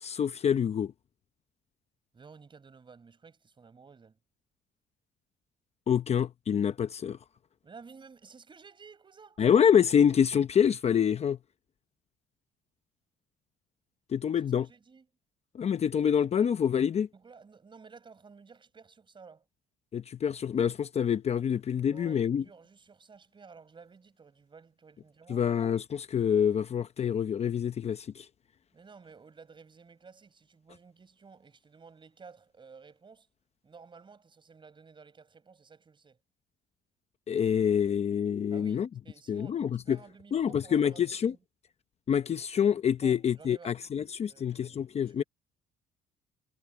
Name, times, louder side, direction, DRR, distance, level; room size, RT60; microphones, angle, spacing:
voice 1, 0.0-0.9 5.9-7.2 9.4-11.4 14.1-14.7 15.5-17.1 19.9-22.4 25.3-28.3 37.3-38.9 39.3-40.0 40.3-41.3 42.1-45.2, left 8 dB, 40° left, 0.8 m, -26 dB
voice 2, 2.1-4.2 7.6-9.4 14.6-15.1 17.1-19.4 21.9-25.5 28.7-33.3 33.6-36.2 38.5-41.0 41.3-41.4 43.0-43.8 44.3-45.2, right 5 dB, 30° right, 6.4 m, -53 dB
cardioid pair, 110°, 17 cm